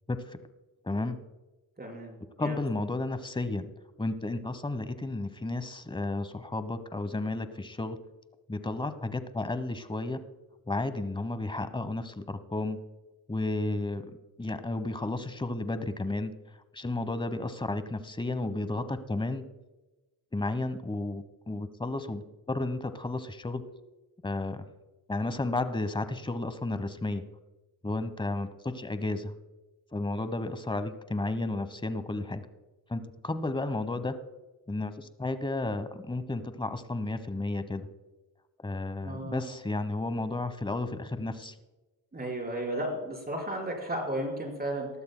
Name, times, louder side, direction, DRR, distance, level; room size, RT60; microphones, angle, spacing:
voice 1, 0.1-0.4 0.8-1.2 2.4-3.7 4.0-8.0 8.5-10.2 10.7-12.8 13.3-14.1 14.4-16.3 16.7-19.4 20.3-23.6 24.2-24.7 25.1-27.2 27.8-29.3 29.9-32.4 32.9-34.1 34.7-37.9 38.6-41.6, left 2 dB, 10° left, 12 dB, 1.0 m, -32 dB
voice 2, 1.8-2.5 39.0-39.5 42.1-44.9, right 1 dB, 20° right, 0 dB, 4.9 m, -34 dB
20.0 x 13.5 x 2.2 m, 1.1 s
cardioid pair, 85°, 45 cm